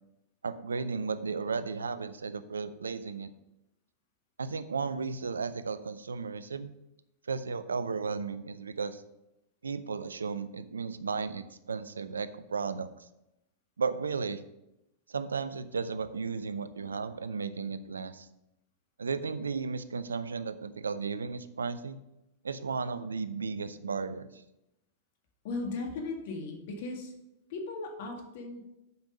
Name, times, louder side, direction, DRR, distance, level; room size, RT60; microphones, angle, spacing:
voice 1, 0.4-3.3 4.4-6.7 7.2-9.0 9.6-13.1 13.8-14.4 15.1-18.3 19.0-22.0 22.4-24.4, right 5 dB, 90° right, 13 dB, 0.5 m, -34 dB
voice 2, 25.4-27.1 27.5-28.6, left 3 dB, 60° left, 3 dB, 1.9 m, -37 dB
7.9 x 5.4 x 5.1 m, 0.89 s
hypercardioid pair, 105°, 0 cm